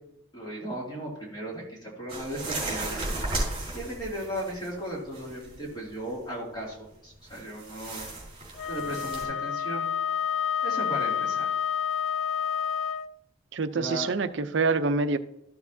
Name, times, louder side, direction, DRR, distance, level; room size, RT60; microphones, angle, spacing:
voice 1, 0.3-3.0 3.7-8.1 8.7-9.9 10.6-11.5 13.7-14.1, right 1 dB, 20° left, -4 dB, 2.5 m, -36 dB
sound 1, 2.1-4.8 5.1-5.8 7.3-9.2, right 2 dB, 25° right, 3.5 m, -34 dB
Wind instrument woodwind instrument, 8.6-13.1, left 8 dB, 70° left, 0.3 m, -29 dB
voice 2, 13.5-15.2, right 4 dB, 60° right, 11 dB, 0.5 m, -26 dB
13.0 x 7.1 x 2.7 m, 0.80 s
head